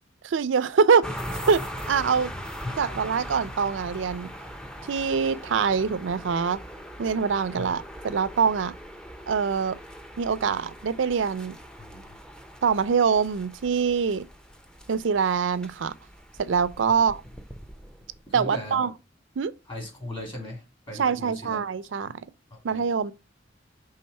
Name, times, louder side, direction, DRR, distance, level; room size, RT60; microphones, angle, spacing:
voice 1, 0.2-1.2 1.5-2.3 2.8-4.3 4.9-6.6 7.0-8.7 9.3-9.8 10.2-11.6 12.6-14.2 14.9-15.9 16.4-17.2 18.3-18.9 19.4-19.5 20.9-22.1 22.6-23.1, right 6 dB, 85° right, 0.5 m, -24 dB
sound 1, 1.0-18.3, equal, 5° left, 0.6 m, -40 dB
voice 2, 18.3-18.7 19.7-21.6 22.5-22.8, left 1 dB, 30° left, 2.8 m, -38 dB
5.6 x 3.5 x 5.3 m
head